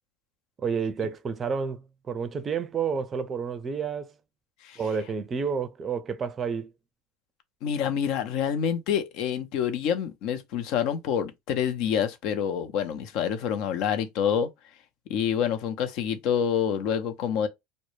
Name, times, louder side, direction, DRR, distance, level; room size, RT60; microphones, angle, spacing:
voice 1, 0.6-4.1 4.8-6.7, right 6 dB, 30° right, 0.4 m, -30 dB
voice 2, 7.6-14.5 15.1-17.5, left 8 dB, 60° left, 0.5 m, -27 dB
2.1 x 2.0 x 3.0 m
hypercardioid pair, 95°, 0 cm